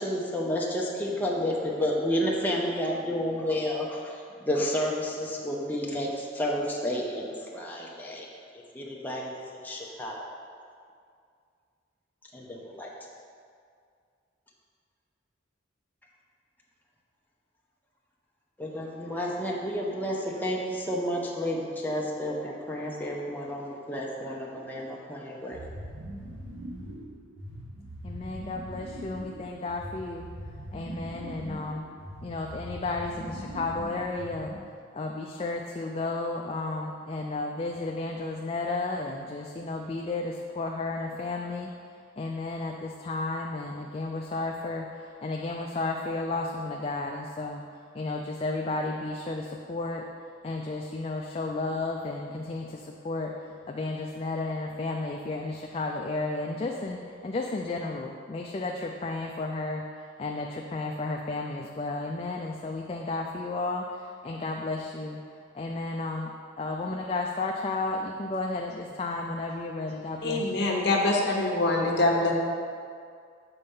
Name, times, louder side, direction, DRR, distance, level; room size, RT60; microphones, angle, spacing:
voice 1, 0.0-4.2 4.4-8.3 8.7-10.2 12.3-12.9 18.6-25.6, equal, 10° left, -3 dB, 0.7 m, -31 dB
sound 1, 25.5-34.7, right 1 dB, 85° right, 1.3 m, -41 dB
voice 2, 28.0-30.3 30.7-31.9 32.2-34.6 34.9-41.8 42.2-50.1 50.4-66.3 66.6-70.7, left 2 dB, 30° left, 1 dB, 0.3 m, -33 dB
voice 3, 70.2-72.3, left 2 dB, 60° left, 0 dB, 1.0 m, -24 dB
6.9 x 4.4 x 5.4 m, 2.2 s
head